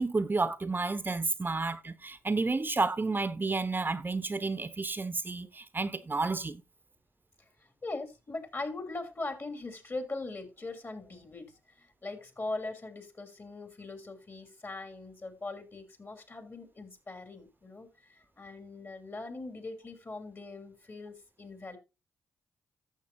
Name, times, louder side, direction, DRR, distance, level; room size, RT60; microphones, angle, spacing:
voice 1, 0.0-6.6, right 3 dB, 30° right, 0.9 m, -31 dB
voice 2, 7.4-21.8, left 2 dB, 40° left, 3.1 m, -41 dB
14.0 x 6.7 x 2.7 m
hypercardioid pair, 40°, 6 cm